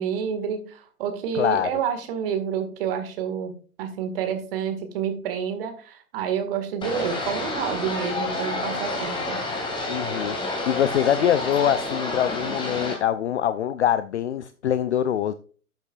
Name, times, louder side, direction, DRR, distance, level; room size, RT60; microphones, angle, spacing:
voice 1, 0.0-3.5 3.8-9.4, right 7 dB, 40° right, 1.9 m, -29 dB
voice 2, 1.3-1.7 9.9-15.3, left 10 dB, 50° left, 0.6 m, -24 dB
sound 1, 6.8-13.0, left 2 dB, 10° left, 2.2 m, -29 dB
12.0 x 8.1 x 2.4 m
figure-of-eight pair, 115°, 45 cm